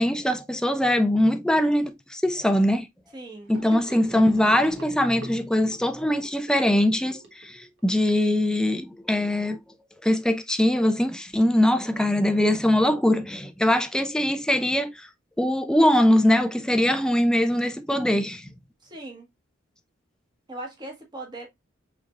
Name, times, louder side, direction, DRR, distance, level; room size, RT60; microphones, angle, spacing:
voice 1, 0.0-2.9 3.5-9.6 10.0-15.1 15.4-18.5, left 1 dB, 5° left, 0.5 m, -22 dB
voice 2, 3.1-3.5 18.8-19.3 20.5-21.5, right 2 dB, 20° right, 1.4 m, -39 dB
Gurgling / Sink (filling or washing), 3.5-8.0, right 3 dB, 65° right, 1.4 m, -43 dB
6.2 x 3.4 x 2.4 m
head